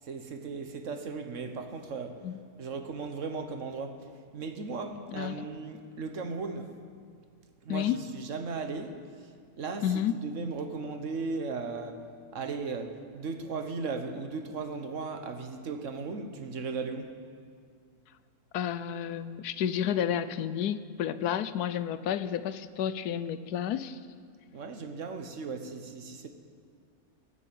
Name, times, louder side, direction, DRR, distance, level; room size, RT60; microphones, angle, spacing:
voice 1, 0.0-2.2 2.6-6.7 7.6-9.3 9.6-17.1 24.5-26.3, right 4 dB, 55° right, 6 dB, 1.4 m, -37 dB
voice 2, 5.1-5.4 7.7-8.0 9.8-10.2 18.5-24.0, left 9 dB, 85° left, 14 dB, 1.2 m, -31 dB
21.0 x 7.0 x 8.5 m, 2.2 s
omnidirectional pair, 1.6 m